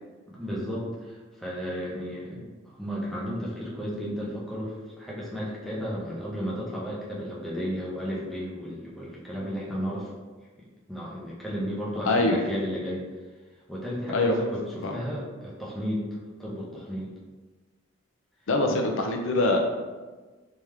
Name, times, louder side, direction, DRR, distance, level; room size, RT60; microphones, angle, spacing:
voice 1, 0.3-10.1 10.9-13.0 13.7-16.1 16.4-17.1, equal, ahead, -7 dB, 0.7 m, -33 dB
voice 2, 12.0-12.4 14.1-14.3 14.8-14.9 18.5-19.6, left 2 dB, 70° left, 2 dB, 0.5 m, -23 dB
3.5 x 3.0 x 3.2 m, 1.3 s
head